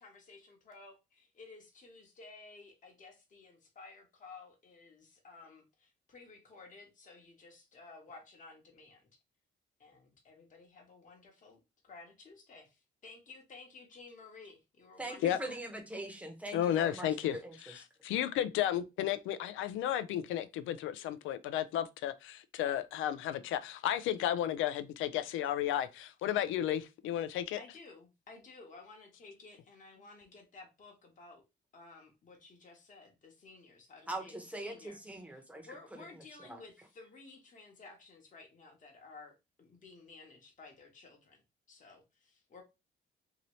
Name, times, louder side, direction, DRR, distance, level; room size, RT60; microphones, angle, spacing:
voice 1, 0.0-9.0 9.8-15.6 27.6-31.4 31.7-35.0 35.6-41.4 41.7-42.6, left 3 dB, 40° left, 1.0 m, -54 dB
voice 2, 15.0-17.8 34.1-35.8 36.5-36.6, right 1 dB, 5° right, 0.9 m, -42 dB
voice 3, 16.5-17.4 17.7-27.6, left 11 dB, 85° left, 0.4 m, -33 dB
2.8 x 2.7 x 3.0 m
cardioid pair, 90°, 20 cm